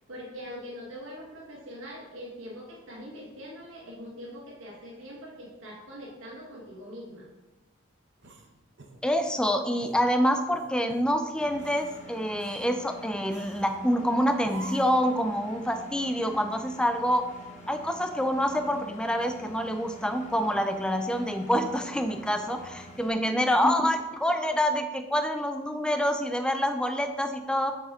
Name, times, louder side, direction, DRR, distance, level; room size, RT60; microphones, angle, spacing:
voice 1, 0.1-7.3 23.1-23.5, equal, 75° right, -3 dB, 1.4 m, -43 dB
sound 1, 8.2-9.4 9.8-10.1 10.5-11.1 11.5-12.0 12.4-12.7 13.3-13.8 14.4-15.1, right 3 dB, 60° right, 0.8 m, -47 dB
voice 2, 9.0-17.3 17.7-27.7, equal, 5° left, 6 dB, 0.4 m, -26 dB
Engine, 11.4-23.1, equal, 35° left, 1.0 m, -47 dB
8.0 x 5.8 x 3.7 m, 1.1 s
head